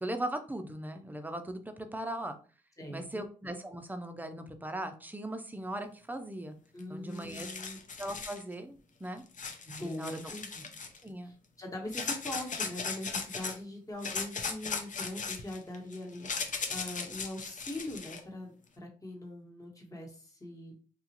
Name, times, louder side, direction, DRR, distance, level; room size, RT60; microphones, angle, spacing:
voice 1, 0.0-2.4 2.9-6.6 6.9-7.5 8.0-9.2 9.8-10.2 11.0-11.3, right 1 dB, 10° right, 7 dB, 0.5 m, -39 dB
voice 2, 2.8-3.2 6.7-7.8 9.6-10.6 11.2-20.7, left 1 dB, 20° left, 1 dB, 1.2 m, -42 dB
sound 1, 6.8-6.9 7.1-8.4 9.3-11.0 11.9-13.6 14.0-18.2, left 5 dB, 55° left, 0.6 m, -38 dB
3.0 x 2.3 x 2.9 m, 0.38 s
cardioid pair, 65°, 16 cm